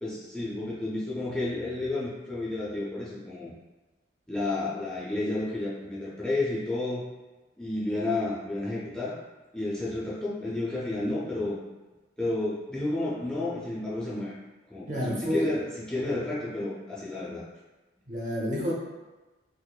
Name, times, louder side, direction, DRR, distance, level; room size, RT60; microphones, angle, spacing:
voice 1, 0.0-3.5 4.3-7.1 7.6-9.2 9.5-11.6 12.2-14.3 14.7-17.5, left 2 dB, 5° left, -8 dB, 0.5 m, -31 dB
voice 2, 14.9-15.5 18.1-18.7, left 1 dB, 40° right, -4 dB, 0.7 m, -29 dB
4.3 x 2.6 x 2.3 m, 1.2 s
head